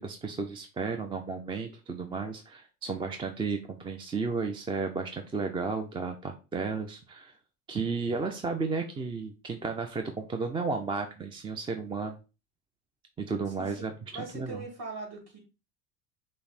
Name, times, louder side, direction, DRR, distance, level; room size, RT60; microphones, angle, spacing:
voice 1, 0.0-7.3 7.7-12.2 13.2-14.6, right 4 dB, 15° right, 6 dB, 0.4 m, -33 dB
voice 2, 13.5-13.9 14.1-15.4, right 3 dB, 40° right, 1 dB, 2.2 m, -41 dB
5.5 x 2.1 x 3.9 m, 0.30 s
hypercardioid pair, 85°, 38 cm